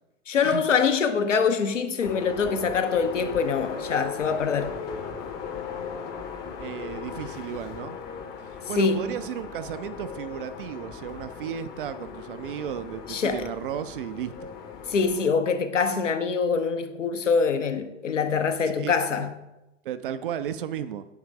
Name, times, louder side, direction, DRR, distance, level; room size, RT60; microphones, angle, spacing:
voice 1, 0.3-4.8 8.8-9.1 13.1-13.4 14.9-19.3, left 5 dB, 70° left, 0.8 m, -24 dB
sound 1, 2.0-15.3, left 6 dB, 25° left, 0.8 m, -37 dB
voice 2, 6.6-8.0 8.5-14.3 18.8-19.3 19.8-21.1, right 9 dB, 45° right, 0.5 m, -34 dB
9.5 x 3.2 x 4.7 m
figure-of-eight pair, 95°, 38 cm